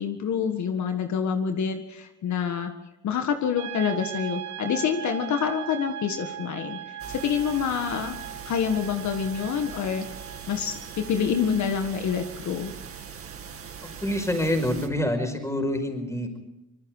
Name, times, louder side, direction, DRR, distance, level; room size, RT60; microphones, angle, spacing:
voice 1, 0.0-2.7 3.0-8.2 8.5-10.1 10.5-12.7, left 7 dB, 70° left, 6 dB, 1.8 m, -27 dB
sound 1, 3.5-14.4, right 11 dB, 80° right, 1.8 m, -40 dB
sound 2, 7.0-14.9, right 7 dB, 45° right, 2.3 m, -41 dB
voice 2, 13.8-16.4, left 1 dB, 10° left, 5 dB, 5.3 m, -27 dB
25.0 x 21.0 x 4.9 m, 0.96 s
cardioid pair, 90°, 30 cm